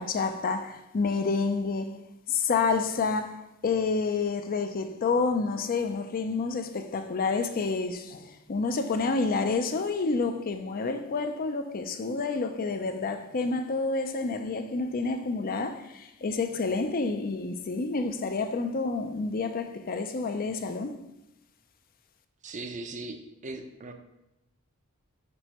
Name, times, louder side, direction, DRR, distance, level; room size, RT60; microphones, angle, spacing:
voice 1, 0.0-1.9 2.3-3.4 3.6-20.9, left 4 dB, 45° left, 0.5 m, -29 dB
voice 2, 22.4-23.2 23.4-23.9, right 2 dB, 35° right, 0.5 m, -38 dB
6.1 x 5.5 x 3.0 m
head